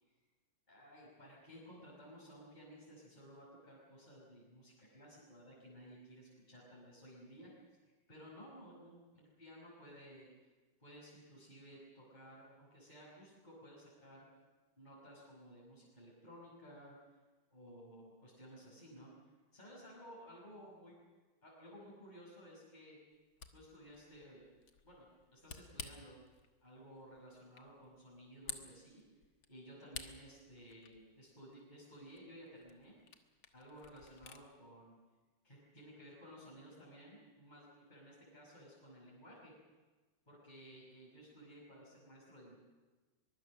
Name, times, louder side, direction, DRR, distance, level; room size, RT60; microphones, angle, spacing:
voice 1, 0.7-7.5 7.9-10.3 10.8-14.3 14.8-17.0 17.5-19.1 19.5-20.9 21.4-23.0 23.5-24.4 24.8-26.1 26.6-29.0 29.5-32.9 33.5-35.0 35.4-39.5 40.3-42.6, equal, 20° left, -6 dB, 6.0 m, -56 dB
Camera, 23.1-34.5, left 6 dB, 75° left, 2.2 m, -54 dB
23.5 x 23.0 x 6.5 m, 1.3 s
omnidirectional pair, 2.2 m